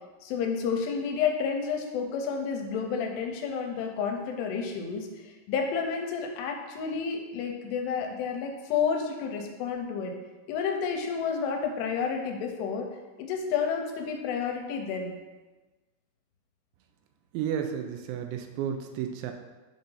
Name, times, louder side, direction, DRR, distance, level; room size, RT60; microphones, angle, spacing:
voice 1, 0.2-10.2 10.5-12.9 13.2-15.1, left 6 dB, 85° left, 3 dB, 2.7 m, -30 dB
voice 2, 17.3-19.3, right 8 dB, 90° right, 5 dB, 2.8 m, -32 dB
7.1 x 2.6 x 5.4 m, 1.2 s
omnidirectional pair, 4.9 m